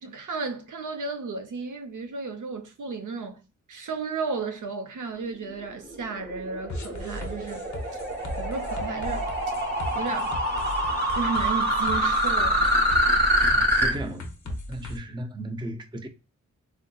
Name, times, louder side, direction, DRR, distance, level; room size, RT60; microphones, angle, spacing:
voice 1, 0.0-3.4 3.7-7.7 8.4-9.3 9.9-10.3 11.2-12.8, right 4 dB, 75° right, 0.6 m, -33 dB
sound 1, 5.9-13.9, equal, 30° right, 0.8 m, -25 dB
sound 2, 6.7-15.0, left 1 dB, 65° left, 0.7 m, -36 dB
voice 2, 13.5-16.1, right 1 dB, 15° right, 0.4 m, -36 dB
3.6 x 2.6 x 2.2 m
wide cardioid pair, 130°, 31 cm